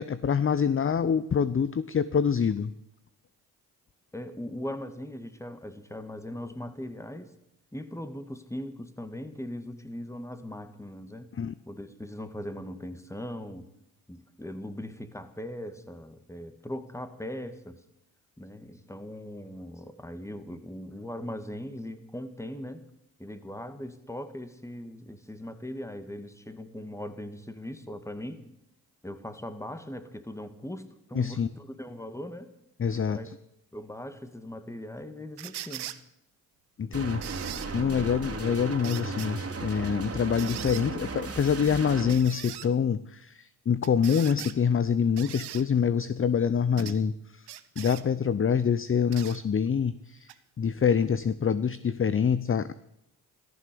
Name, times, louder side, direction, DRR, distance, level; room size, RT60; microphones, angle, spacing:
voice 1, 0.0-2.7 11.4-11.5 31.1-31.5 32.8-33.2 36.8-47.1 47.8-50.3 50.6-52.7, left 7 dB, 35° left, 15 dB, 0.7 m, -26 dB
voice 2, 4.1-7.3 7.7-11.3 11.7-13.7 14.1-17.8 18.4-22.8 23.2-28.4 29.0-32.5 33.1-33.3 33.7-35.9 46.7-47.1, left 1 dB, 5° left, 10 dB, 2.0 m, -39 dB
sound 1, 35.4-36.0 37.2-37.7 38.8-39.3 40.4-40.9 42.1-42.7 43.8-44.6 45.2-45.6 46.8-47.0 47.5-48.0 49.1-49.4 50.3-50.4, right 13 dB, 75° right, 0.9 m, -40 dB
sound 2, 36.9-42.1, right 3 dB, 35° right, 3.1 m, -35 dB
14.0 x 14.0 x 6.9 m, 0.80 s
supercardioid pair, 50°, 39 cm